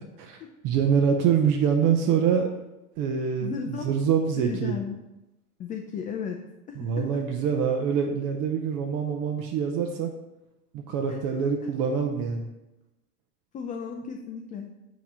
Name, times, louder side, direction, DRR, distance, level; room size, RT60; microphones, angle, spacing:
voice 1, 0.6-2.5 3.0-4.8 6.7-10.1 10.7-12.5, right 7 dB, 45° right, 2 dB, 0.8 m, -25 dB
voice 2, 3.4-3.9 4.4-5.0 5.6-6.4 6.7-7.1 13.5-14.7, left 6 dB, 20° left, 2 dB, 0.4 m, -34 dB
8.4 x 3.1 x 5.5 m, 0.95 s
hypercardioid pair, 95°, 46 cm